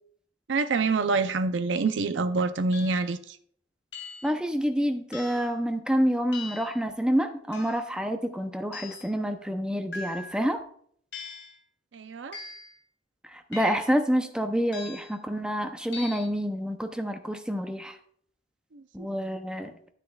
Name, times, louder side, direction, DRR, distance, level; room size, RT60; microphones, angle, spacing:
voice 1, 0.5-3.4 11.9-12.4 18.7-19.1, right 4 dB, 75° right, 0.6 m, -27 dB
sound 1, 1.7-2.0 2.7-3.1 3.9-4.4 5.1-5.6 6.3-6.8 7.5-7.9 8.7-9.1 9.9-10.4 11.1-11.6 12.3-12.7 13.5-14.0 14.7-15.2 15.9-16.3, left 3 dB, 75° left, 2.8 m, -41 dB
voice 2, 4.2-10.6 13.2-18.0 18.9-19.7, equal, 5° right, 0.6 m, -28 dB
10.0 x 9.7 x 2.4 m
head